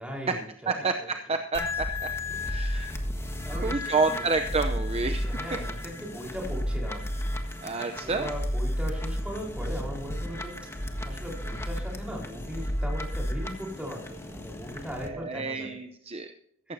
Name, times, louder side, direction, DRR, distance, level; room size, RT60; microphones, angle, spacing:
voice 1, 0.0-0.8 2.3-2.5 3.4-4.2 5.2-7.1 8.0-10.5 11.0-15.7, equal, 5° right, -2 dB, 4.4 m, -38 dB
voice 2, 0.7-1.9 2.5-2.9 3.5-5.2 7.6-8.3 15.0-16.3, right 4 dB, 30° right, 7 dB, 0.7 m, -29 dB
sound 1, 1.5-15.1, left 1 dB, 15° left, 1.5 m, -32 dB
15.0 x 14.5 x 2.8 m, 0.69 s
head